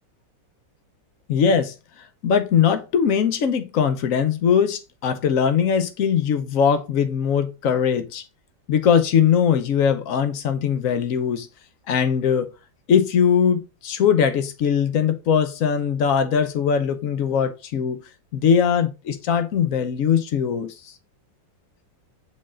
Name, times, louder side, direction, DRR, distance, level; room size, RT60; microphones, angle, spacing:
voice 1, 1.3-1.7 2.2-8.2 8.7-11.5 11.9-12.5 12.9-18.0 18.3-20.7, left 7 dB, 60° left, 1.0 m, -20 dB
6.3 x 4.0 x 3.8 m
omnidirectional pair, 1.9 m